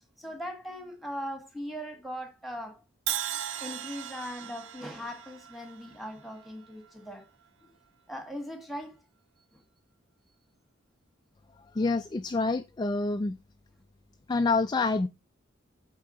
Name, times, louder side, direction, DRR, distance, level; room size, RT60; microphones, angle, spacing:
voice 1, 0.2-2.8 3.5-7.3 8.1-9.0 9.5-9.6, equal, ahead, 1.6 m, -39 dB
Crash cymbal, 3.1-7.1, right 11 dB, 70° right, 0.5 m, -37 dB
voice 2, 11.7-13.4 14.3-15.1, left 3 dB, 20° left, 0.3 m, -27 dB
8.8 x 3.7 x 5.5 m
head